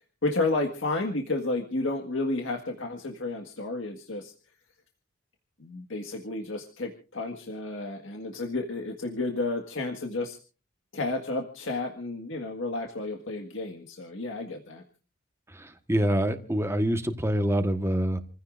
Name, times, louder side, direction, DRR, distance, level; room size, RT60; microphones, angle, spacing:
voice 1, 0.2-4.3 5.6-10.4 10.9-14.8, left 2 dB, 70° left, 2 dB, 1.8 m, -31 dB
voice 2, 15.5-18.2, right 1 dB, 15° right, 7 dB, 1.4 m, -26 dB
28.5 x 15.5 x 2.6 m, 0.35 s
head